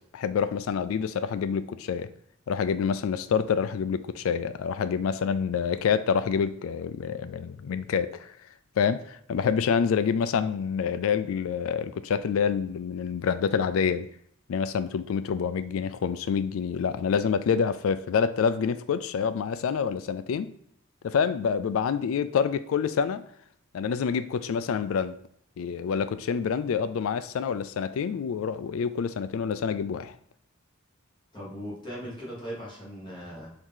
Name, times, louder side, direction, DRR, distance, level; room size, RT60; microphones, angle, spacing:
voice 1, 0.1-2.1 2.5-8.3 8.8-14.1 14.5-20.5 21.0-23.2 23.7-25.2 25.6-30.1, left 6 dB, 70° left, 13 dB, 0.3 m, -27 dB
voice 2, 31.3-33.5, equal, 25° left, -6 dB, 1.6 m, -39 dB
4.7 x 2.7 x 3.7 m, 0.67 s
head